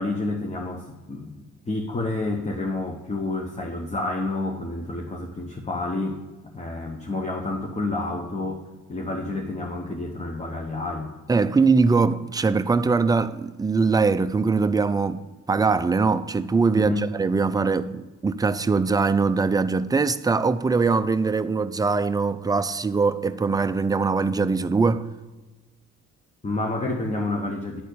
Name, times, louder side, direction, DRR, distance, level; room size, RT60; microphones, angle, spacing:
voice 1, 0.0-1.4 1.7-6.2 6.4-8.6 8.9-11.1 16.8-17.1 26.4-27.8, left 2 dB, 20° left, 1.0 m, -29 dB
voice 2, 11.3-15.2 15.5-25.1, right 4 dB, 15° right, 0.4 m, -22 dB
10.5 x 4.2 x 6.7 m
cardioid pair, 90°, 30 cm